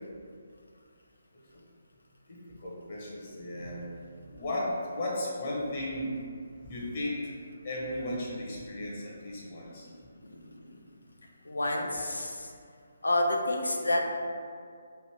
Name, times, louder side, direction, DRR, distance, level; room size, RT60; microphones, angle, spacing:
voice 1, 2.3-3.8 4.2-6.1 6.6-7.2 7.6-9.9, left 1 dB, 40° left, -5 dB, 1.0 m, -35 dB
voice 2, 10.2-10.8 11.4-12.5 13.0-14.3, left 1 dB, 75° left, 2 dB, 0.6 m, -29 dB
3.4 x 2.7 x 4.5 m, 2.2 s
figure-of-eight pair, 140°, 0 cm